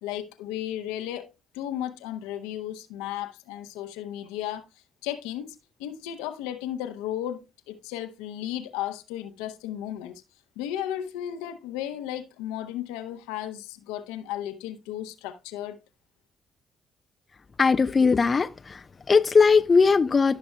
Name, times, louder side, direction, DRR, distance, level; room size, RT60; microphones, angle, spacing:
voice 1, 0.0-4.7 5.0-10.2 10.6-15.8, left 11 dB, 80° left, 0.8 m, -34 dB
voice 2, 17.6-20.4, left 5 dB, 40° left, 0.4 m, -20 dB
15.5 x 6.0 x 2.2 m
hypercardioid pair, 45°, 0 cm